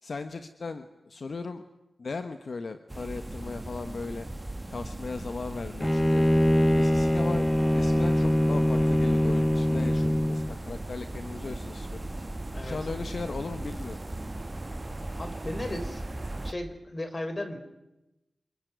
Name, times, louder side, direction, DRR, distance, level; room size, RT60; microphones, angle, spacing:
voice 1, 0.0-1.7 2.0-4.3 4.7-6.2 6.7-12.0 12.6-14.0, left 4 dB, 60° left, 9 dB, 1.4 m, -37 dB
sound 1, 2.9-16.5, right 1 dB, 20° right, 1.6 m, -38 dB
Bowed string instrument, 5.8-10.6, left 1 dB, 10° left, 1.0 m, -23 dB
sound 2, 7.6-16.5, right 4 dB, 65° right, 2.4 m, -49 dB
voice 2, 15.2-16.0 16.4-17.6, left 1 dB, 35° left, 9 dB, 4.3 m, -35 dB
27.5 x 22.5 x 9.5 m, 0.95 s
wide cardioid pair, 85°, 0 cm